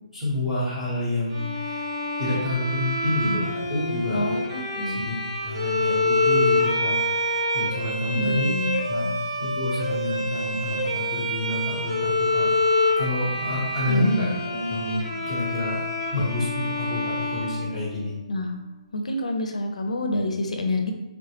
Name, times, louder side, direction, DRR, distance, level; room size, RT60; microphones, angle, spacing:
voice 1, 0.1-4.3 4.7-5.2 5.4-7.1 7.5-8.5 8.9-12.5 13.0-15.8 16.1-18.1, left 1 dB, ahead, -14 dB, 0.7 m, -28 dB
Bowed string instrument, 1.3-18.3, left 1 dB, 45° right, 0.7 m, -27 dB
voice 2, 4.1-5.1 8.1-8.8 13.9-14.4 18.3-18.5 18.9-20.9, left 1 dB, 75° left, 4 dB, 0.4 m, -27 dB
3.1 x 2.0 x 2.8 m, 1.1 s
hypercardioid pair, 180°, 4 cm